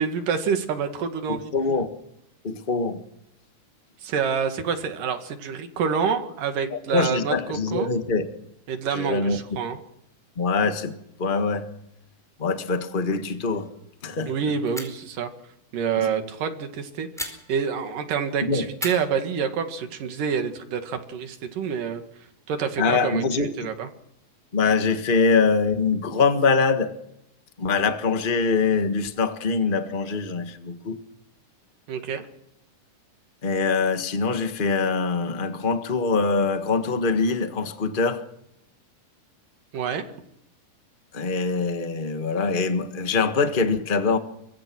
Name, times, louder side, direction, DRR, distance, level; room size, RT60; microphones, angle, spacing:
voice 1, 0.0-1.5 4.0-7.9 8.7-9.8 14.3-15.3 15.7-22.0 22.5-23.9 31.9-32.2 39.7-40.1, right 6 dB, 75° right, 7 dB, 3.7 m, -27 dB
voice 2, 1.3-1.9 2.4-3.0 6.7-8.3 8.9-9.4 10.4-11.7 12.4-13.7 14.0-14.3 16.0-16.1 18.4-18.6 22.8-23.5 24.5-26.9 27.6-31.0 33.4-38.2 41.1-44.2, left 4 dB, 65° left, 7 dB, 0.5 m, -23 dB
sound 1, 13.4-13.8 14.1-14.2 14.7-15.1 17.2-18.0 18.7-19.9, equal, ahead, 4.2 m, -38 dB
24.5 x 20.0 x 6.2 m, 0.78 s
omnidirectional pair, 3.9 m